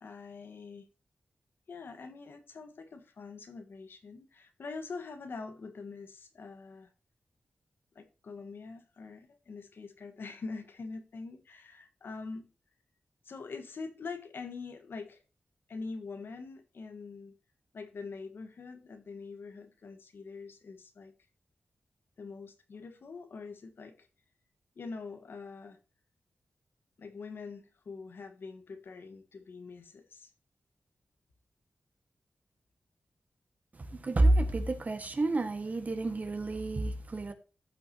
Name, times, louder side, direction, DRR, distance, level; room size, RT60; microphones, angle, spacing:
voice 1, 0.0-0.9 1.7-6.9 7.9-12.5 13.2-15.2 15.7-17.3 17.7-21.1 22.2-24.1 24.7-25.8 27.0-30.3, left 4 dB, 70° left, 1.4 m, -44 dB
voice 2, 33.7-37.3, right 2 dB, 45° right, 1.6 m, -29 dB
15.0 x 5.9 x 2.9 m
wide cardioid pair, 85°, 4 cm